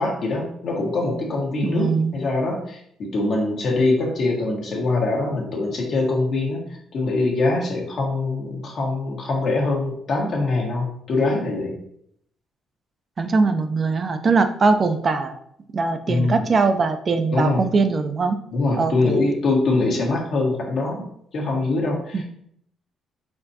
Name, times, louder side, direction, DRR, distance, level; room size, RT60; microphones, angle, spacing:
voice 1, 0.0-11.8 16.1-16.4 17.3-17.6 18.5-21.1 21.3-22.2, left 2 dB, 60° left, -1 dB, 1.3 m, -23 dB
voice 2, 1.6-2.2 13.2-15.4 15.7-18.4 18.8-19.2 22.1-22.2, right 4 dB, 40° right, 8 dB, 0.5 m, -21 dB
4.4 x 4.3 x 2.8 m, 0.69 s
cardioid pair, 85°, 0 cm